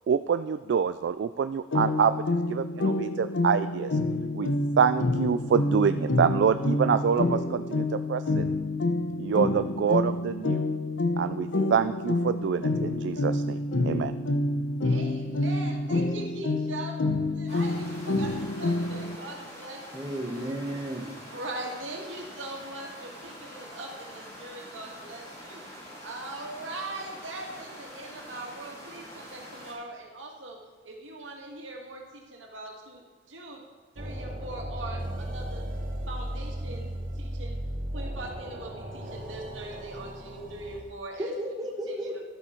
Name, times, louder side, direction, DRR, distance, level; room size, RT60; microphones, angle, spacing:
voice 1, 0.1-4.0 4.3-4.5 4.8-8.5 9.2-10.6 11.2-14.1, right 7 dB, 65° right, 11 dB, 0.3 m, -26 dB
sound 1, 1.7-19.2, left 2 dB, 80° left, 0.8 m, -28 dB
voice 2, 14.8-16.9 17.3-19.8 20.1-20.3 21.2-25.6 26.0-33.6 34.0-35.7 36.1-36.9 37.2-37.6 37.9-41.3 41.9-42.2, right 2 dB, 85° right, 0 dB, 2.0 m, -41 dB
sound 2, 17.5-29.7, equal, 40° left, 3.1 m, -45 dB
voice 3, 19.9-21.1 41.2-42.2, equal, 20° right, 2 dB, 1.1 m, -33 dB
sound 3, 34.0-40.8, equal, 45° right, 1.3 m, -36 dB
12.5 x 8.2 x 4.4 m, 1.3 s
head